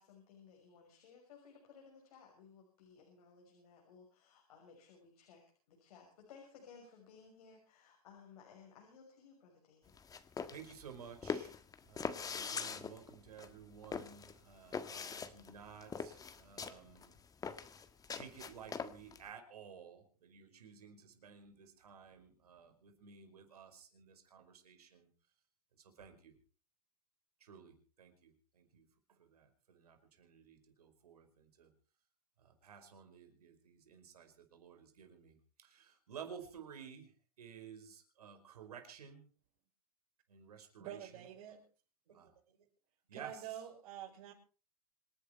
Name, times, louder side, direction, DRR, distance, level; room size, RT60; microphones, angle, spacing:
voice 1, 0.0-5.4 5.7-9.9, left 6 dB, 75° left, 2 dB, 6.2 m, -59 dB
sound 1, 9.9-19.2, left 6 dB, 20° left, 1.6 m, -43 dB
voice 2, 10.5-17.1 18.1-25.1 25.8-26.3 27.4-31.7 32.4-37.1 37.4-39.3 40.3-41.1 42.1-42.3 43.1-43.4, right 7 dB, 90° right, 6 dB, 5.0 m, -54 dB
voice 3, 40.8-41.6 43.1-44.3, right 11 dB, 60° right, -5 dB, 6.3 m, -47 dB
26.5 x 10.5 x 4.5 m, 0.38 s
hypercardioid pair, 120°, 19 cm